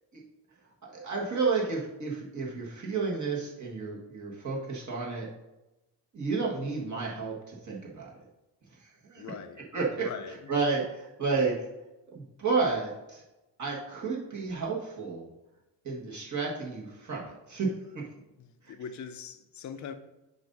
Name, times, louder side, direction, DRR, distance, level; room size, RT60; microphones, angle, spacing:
voice 1, 0.8-5.3 6.1-8.1 8.7-9.3 9.7-11.6 12.1-13.2 13.6-15.3 15.8-18.1 18.6-18.7, right 4 dB, 40° right, 1.6 m, -31 dB
voice 2, 9.2-9.6 10.0-10.4 18.4-19.9, left 7 dB, 40° left, 0.6 m, -41 dB
7.8 x 2.7 x 5.4 m
cardioid pair, 110°, 45 cm